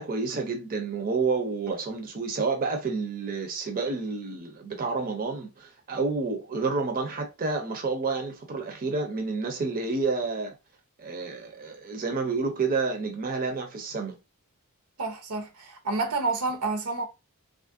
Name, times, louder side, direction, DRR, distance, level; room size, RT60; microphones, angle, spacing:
voice 1, 0.0-10.6 11.0-14.2, right 4 dB, 40° right, 0.5 m, -29 dB
voice 2, 15.0-17.1, right 3 dB, 80° right, 0.8 m, -29 dB
3.0 x 2.4 x 2.5 m
head